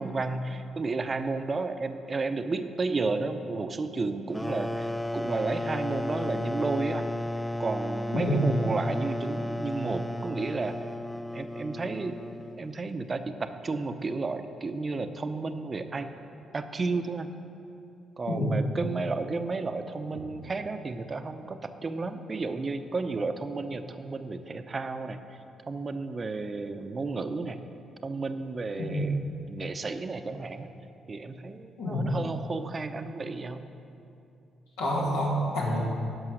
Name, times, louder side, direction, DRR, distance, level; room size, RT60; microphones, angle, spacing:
voice 1, 0.0-4.9 5.1-7.1 7.6-10.8 11.3-12.2 12.6-16.1 16.5-17.3 18.2-25.4 25.7-27.6 28.0-29.2 29.5-30.7 31.1-33.7, right 3 dB, 35° right, 9 dB, 0.6 m, -32 dB
sound 1, 4.3-12.8, left 1 dB, 10° left, 0.3 m, -33 dB
voice 2, 8.1-8.5 18.3-18.6 28.8-29.1 31.8-32.2 34.8-35.8, equal, 90° left, -5 dB, 2.2 m, -27 dB
11.0 x 5.6 x 6.4 m, 2.7 s
supercardioid pair, 60°, 0 cm